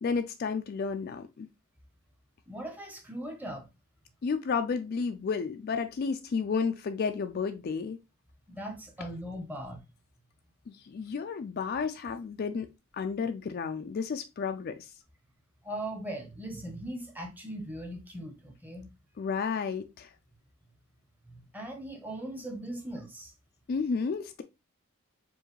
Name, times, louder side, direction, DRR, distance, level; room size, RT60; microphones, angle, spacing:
voice 1, 0.0-1.5 4.2-8.0 10.7-12.7 12.9-14.9 19.2-20.1 23.7-24.4, left 5 dB, 45° left, 0.3 m, -32 dB
voice 2, 2.5-3.7 8.5-9.8 15.6-18.9 21.3-23.3, right 1 dB, 10° right, 0.8 m, -39 dB
4.6 x 2.7 x 3.0 m
head